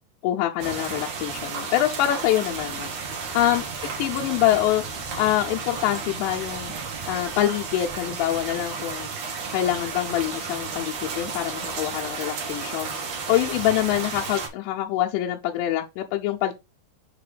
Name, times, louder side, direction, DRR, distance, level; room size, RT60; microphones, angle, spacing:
voice 1, 0.2-2.9 3.3-3.7 4.0-4.8 5.2-6.7 7.1-9.1 9.5-12.9 13.3-16.5, left 13 dB, 85° left, 2.9 m, -25 dB
sound 1, 0.6-14.5, right 5 dB, 65° right, 1.6 m, -33 dB
6.8 x 3.0 x 4.9 m
omnidirectional pair, 5.1 m